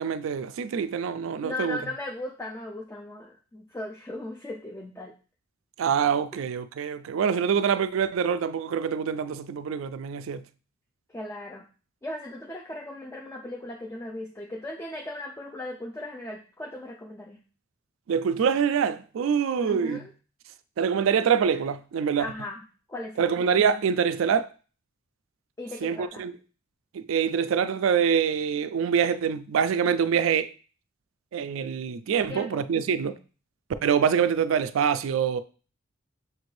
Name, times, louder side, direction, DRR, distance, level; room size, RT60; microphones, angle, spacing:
voice 1, 0.0-1.8 5.8-10.4 18.1-20.1 20.8-22.3 23.2-24.5 25.8-26.3 26.9-30.5 31.3-33.2 33.8-35.4, right 7 dB, 70° right, 0.3 m, -25 dB
voice 2, 1.4-5.1 6.3-6.4 11.1-11.7 12.0-17.4 19.6-20.1 22.2-22.6 22.9-23.4 25.6-26.3 32.3-32.6, left 1 dB, 10° left, 0.4 m, -37 dB
6.5 x 2.6 x 3.1 m
head